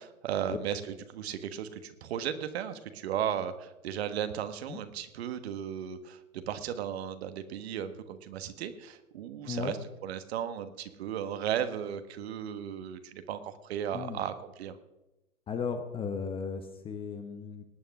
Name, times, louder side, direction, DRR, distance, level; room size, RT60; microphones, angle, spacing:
voice 1, 0.0-9.8 10.0-14.8, right 9 dB, 45° right, 10 dB, 1.5 m, -35 dB
voice 2, 9.4-9.7 13.9-14.2 15.5-17.6, left 6 dB, 15° left, 7 dB, 0.9 m, -35 dB
19.0 x 9.1 x 6.0 m, 0.97 s
figure-of-eight pair, 120°, 42 cm